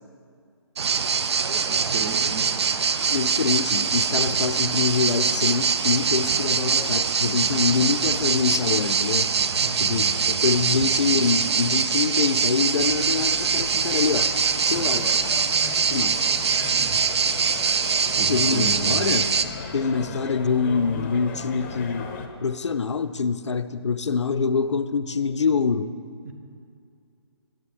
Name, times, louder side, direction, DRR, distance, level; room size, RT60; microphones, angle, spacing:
sound 1, 0.8-19.4, right 6 dB, 70° right, 0.5 m, -23 dB
voice 1, 1.6-2.5 9.6-10.7 16.7-17.0 18.2-19.1 20.0-20.2 26.2-26.3, right 3 dB, 35° right, 5 dB, 0.9 m, -34 dB
voice 2, 3.1-9.3 9.8-14.3 14.6-15.4 15.9-16.2 18.3-19.3 19.7-22.1 22.4-26.0, left 5 dB, 90° left, 11 dB, 0.5 m, -25 dB
sound 2, 12.8-22.3, left 5 dB, 25° left, 0.6 m, -36 dB
11.0 x 7.7 x 3.5 m, 2.3 s
hypercardioid pair, 155°, 15 cm